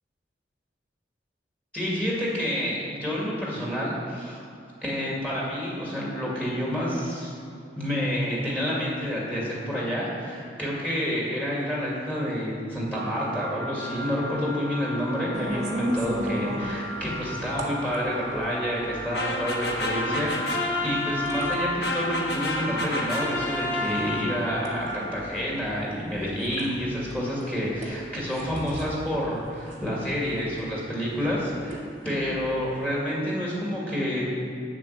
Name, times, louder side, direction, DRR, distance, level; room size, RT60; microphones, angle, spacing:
voice 1, 1.7-4.4 4.8-7.3 7.8-31.8 32.0-34.2, equal, 5° left, -6 dB, 2.2 m, -29 dB
sound 1, 12.9-25.2, equal, 75° right, 1.2 m, -36 dB
sound 2, 15.3-32.9, equal, 40° right, 1.3 m, -38 dB
sound 3, 19.1-24.7, left 1 dB, 70° left, 1.2 m, -29 dB
7.5 x 6.6 x 8.0 m, 2.6 s
head